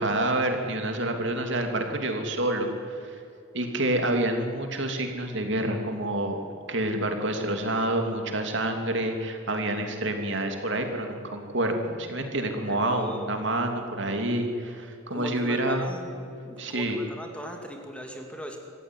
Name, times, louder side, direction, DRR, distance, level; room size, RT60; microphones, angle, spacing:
voice 1, 0.0-2.7 3.0-3.1 3.5-6.4 6.7-15.9 16.6-17.0, right 1 dB, 60° right, 4 dB, 3.1 m, -28 dB
voice 2, 12.5-13.3 15.1-16.1 16.4-18.6, equal, 5° left, 3 dB, 2.3 m, -38 dB
26.0 x 15.0 x 9.6 m, 2.7 s
head